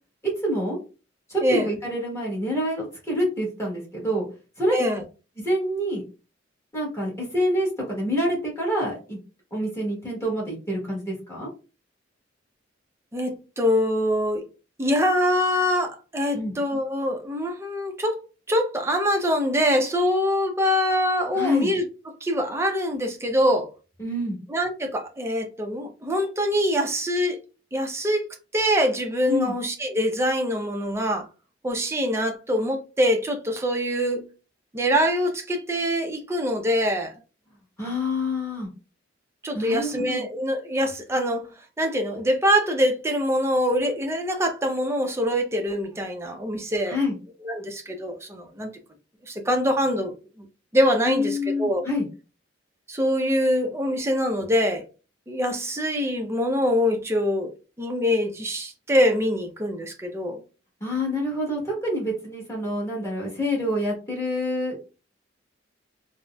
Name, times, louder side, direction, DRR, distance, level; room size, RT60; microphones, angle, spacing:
voice 1, 0.4-0.8 1.3-4.2 4.6-4.8 5.4-6.0 6.7-9.2 9.5-11.5 16.3-16.5 21.3-21.7 24.0-24.4 29.3-29.5 37.8-38.7 39.5-40.3 46.9-47.2 51.0-52.1 60.8-64.8, left 1 dB, 15° left, 1.1 m, -27 dB
voice 2, 4.7-5.0 13.1-14.4 14.8-18.2 18.5-21.8 22.2-23.7 24.5-27.4 27.7-28.3 28.5-31.3 31.6-34.2 34.7-37.1 39.4-41.5 41.8-47.0 47.4-48.7 49.3-50.5 50.7-51.8 52.9-54.9 55.3-57.5 57.8-60.4, equal, 15° right, 0.5 m, -24 dB
3.9 x 2.0 x 2.2 m
head